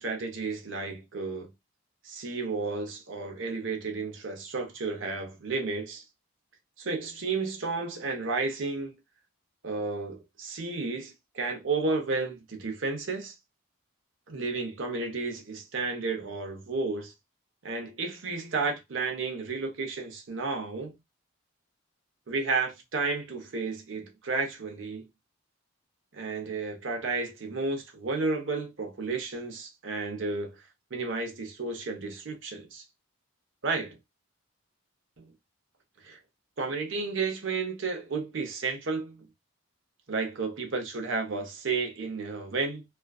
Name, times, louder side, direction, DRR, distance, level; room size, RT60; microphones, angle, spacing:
voice 1, 0.0-1.5 2.0-6.0 6.8-8.9 9.6-13.3 14.3-17.1 17.6-21.0 22.3-25.0 26.1-30.6 30.9-32.8 33.6-34.0 35.2-35.3 36.0-36.2 36.6-39.3 40.1-42.8, right 4 dB, 60° right, 0.7 m, -32 dB
2.4 x 2.2 x 2.2 m
head